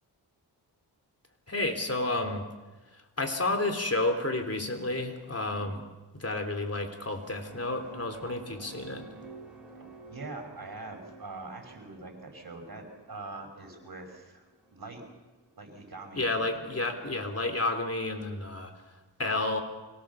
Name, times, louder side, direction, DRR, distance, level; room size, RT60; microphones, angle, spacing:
voice 1, 1.5-2.5 3.2-5.8 6.2-9.0 16.2-18.7 19.2-19.6, left 2 dB, 35° left, 4 dB, 3.5 m, -30 dB
sound 1, 6.9-15.5, right 3 dB, ahead, 7.2 m, -51 dB
voice 2, 10.1-14.5 14.7-15.0 15.6-16.7, right 3 dB, 55° right, 4 dB, 5.4 m, -43 dB
25.5 x 17.5 x 7.1 m, 1.2 s
wide cardioid pair, 70°, 43 cm